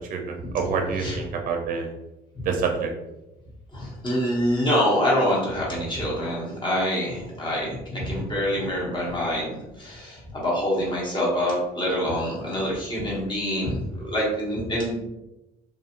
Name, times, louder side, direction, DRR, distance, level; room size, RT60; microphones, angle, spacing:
voice 1, 0.1-1.9 2.4-2.9, right 5 dB, 55° right, 3 dB, 0.5 m, -27 dB
voice 2, 3.7-15.1, equal, 30° left, -5 dB, 1.2 m, -26 dB
2.6 x 2.4 x 2.9 m, 0.96 s
cardioid pair, 110°, 17 cm